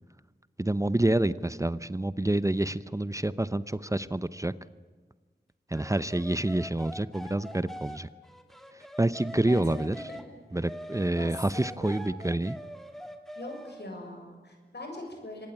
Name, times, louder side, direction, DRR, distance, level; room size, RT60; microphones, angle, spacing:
voice 1, 0.6-4.5 5.7-8.1 9.0-10.1 10.5-12.6, right 1 dB, 20° right, 15 dB, 0.7 m, -28 dB
sound 1, 5.7-10.3 10.7-13.8, equal, ahead, 2.5 m, -43 dB
voice 2, 11.2-12.0 13.3-15.5, left 2 dB, 75° left, 3 dB, 6.7 m, -42 dB
25.0 x 20.0 x 8.8 m, 1.4 s
wide cardioid pair, 50°, 18 cm